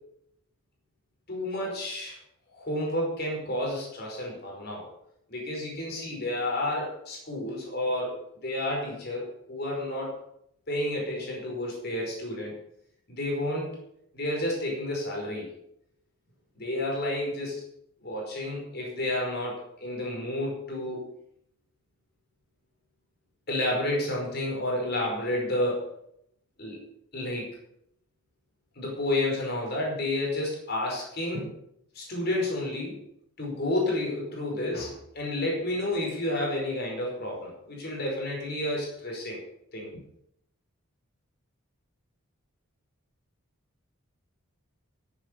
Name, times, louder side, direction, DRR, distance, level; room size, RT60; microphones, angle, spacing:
voice 1, 1.3-2.2 2.5-4.9 5.3-10.1 10.7-12.5 13.1-13.8 14.1-15.5 16.6-17.6 18.0-21.1 23.5-25.9 26.6-26.8 27.1-27.5 28.7-31.5 31.9-33.0 33.4-39.4 39.7-39.9, left 1 dB, 45° left, -2 dB, 5.1 m, -30 dB
11.5 x 9.7 x 6.9 m, 0.72 s
head